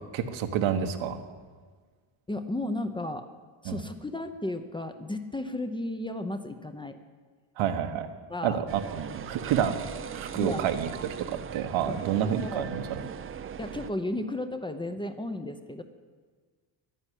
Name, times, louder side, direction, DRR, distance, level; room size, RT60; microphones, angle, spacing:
voice 1, 0.1-1.2 3.6-3.8 7.6-8.1 8.4-9.8 10.1-10.9 11.2-13.0, right 9 dB, 80° right, 7 dB, 1.4 m, -29 dB
voice 2, 2.3-3.3 3.6-7.0 8.3-8.6 10.3-10.7 11.9-12.0 12.4-12.7 13.6-15.8, left 1 dB, 10° left, 8 dB, 0.6 m, -34 dB
sound 1, 8.7-13.9, right 8 dB, 30° right, 0.4 m, -40 dB
11.0 x 10.0 x 9.9 m, 1.5 s
cardioid pair, 145°, 47 cm